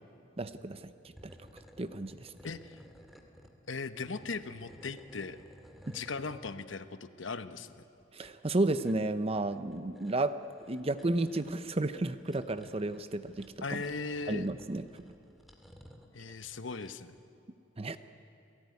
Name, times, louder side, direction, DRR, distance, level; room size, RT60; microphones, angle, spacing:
voice 1, 0.4-0.9 1.8-2.3 5.9-6.0 8.1-10.3 10.7-13.8 14.3-15.1 17.8-18.0, right 2 dB, 30° right, 11 dB, 0.7 m, -32 dB
sound 1, 1.0-3.5 4.0-6.5 7.8-16.9, equal, ahead, 2.0 m, -57 dB
voice 2, 2.4-2.8 3.7-5.4 5.9-7.8 13.6-14.5 16.1-17.2, left 4 dB, 80° left, 11 dB, 1.0 m, -38 dB
28.0 x 17.5 x 9.6 m, 2.7 s
head